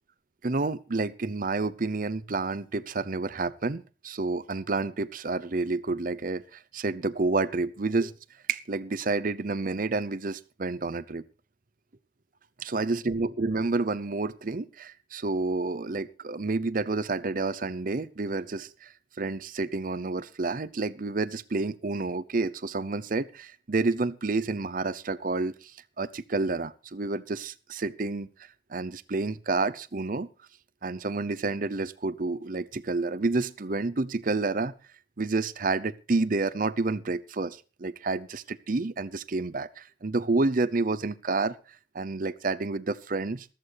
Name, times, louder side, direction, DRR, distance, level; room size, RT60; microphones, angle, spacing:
voice 1, 0.4-8.1 8.5-11.2 12.6-18.9 19.2-25.7 26.0-28.3 28.7-30.3 30.8-34.7 35.2-41.6 41.9-43.5, right 3 dB, 45° right, 17 dB, 0.7 m, -29 dB
14.5 x 14.0 x 3.4 m, 0.34 s
head